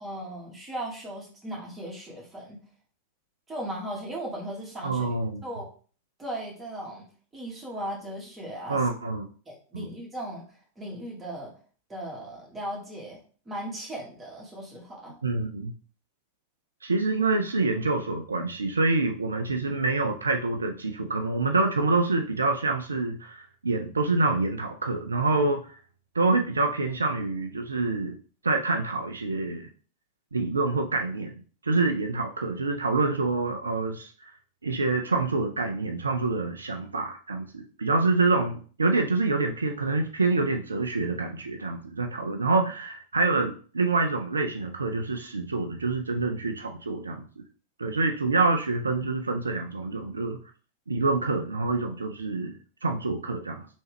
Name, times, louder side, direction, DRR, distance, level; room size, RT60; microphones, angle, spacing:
voice 1, 0.0-2.6 3.5-5.1 5.4-5.6 6.2-8.8 9.4-10.4 10.8-11.5 11.9-13.2 13.4-15.1, right 1 dB, 15° right, -3 dB, 1.6 m, -37 dB
voice 2, 4.8-5.4 8.7-9.3 9.7-9.9 15.2-15.7 16.8-25.8 26.1-28.2 28.4-29.7 30.3-31.4 31.6-34.3 34.6-47.4 47.8-50.4 50.9-53.7, right 3 dB, 75° right, 4 dB, 0.4 m, -26 dB
3.2 x 3.1 x 3.2 m, 0.40 s
figure-of-eight pair, 90°, 0 cm